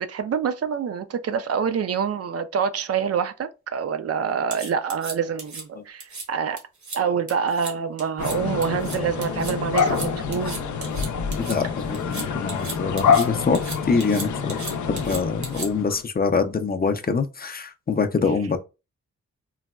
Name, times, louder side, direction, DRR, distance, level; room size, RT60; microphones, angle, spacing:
voice 1, 0.0-6.6 6.9-10.6, right 7 dB, 55° right, 0.4 m, -26 dB
sound 1, 4.5-5.6 6.0-6.2 6.6-7.0 7.3-7.7 8.0-8.4 8.6-11.6 11.9-13.3 13.5-15.9, right 3 dB, 75° right, 1.2 m, -35 dB
sound 2, 8.2-16.0, left 6 dB, 90° left, 0.5 m, -26 dB
voice 2, 11.4-13.6 13.9-14.6 14.9-18.6, left 4 dB, 35° left, 0.4 m, -24 dB
3.9 x 2.2 x 2.2 m
cardioid pair, 80°, 29 cm